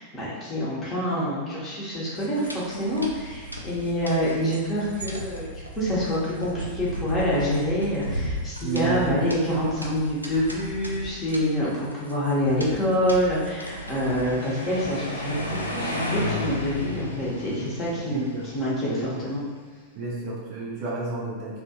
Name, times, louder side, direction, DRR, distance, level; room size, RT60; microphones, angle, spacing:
voice 1, 0.0-19.4, equal, 25° left, -7 dB, 1.0 m, -26 dB
sound 1, 2.1-14.3, right 1 dB, 85° right, 0.3 m, -36 dB
voice 2, 8.6-9.2 18.0-18.5 18.8-19.3 19.9-21.6, right 3 dB, 40° right, -4 dB, 0.6 m, -31 dB
sound 2, 13.3-19.5, left 2 dB, 85° left, 0.3 m, -33 dB
2.6 x 2.4 x 2.8 m, 1.5 s
figure-of-eight pair, 90°, 0 cm